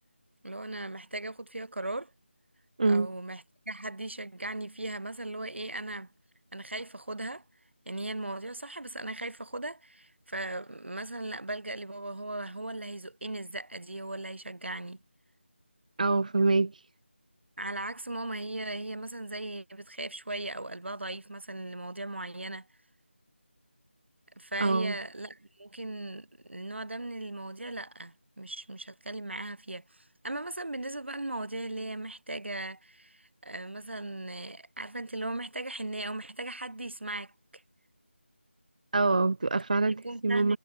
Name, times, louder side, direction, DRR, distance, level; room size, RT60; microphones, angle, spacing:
voice 1, 0.4-2.1 2.8-6.1 6.5-7.4 7.9-15.0 17.6-22.7 24.4-37.6 39.7-40.6, right 2 dB, 65° right, 1.0 m, -38 dB
voice 2, 16.0-16.7 24.6-25.0 38.9-40.6, right 3 dB, 40° right, 0.6 m, -25 dB
figure-of-eight pair, 165°, 7 cm